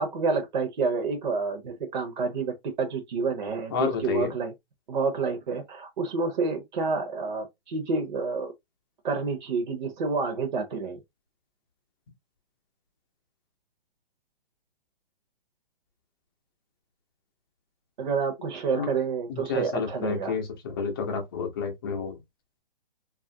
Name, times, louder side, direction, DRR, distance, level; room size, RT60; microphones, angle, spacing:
voice 1, 0.0-4.5 4.9-8.5 9.0-11.0 18.0-20.4, right 4 dB, 55° right, 0.8 m, -29 dB
voice 2, 3.7-4.3 18.7-18.9 19.3-22.2, left 5 dB, 25° left, 0.7 m, -30 dB
3.0 x 2.5 x 2.7 m
hypercardioid pair, 165°, 29 cm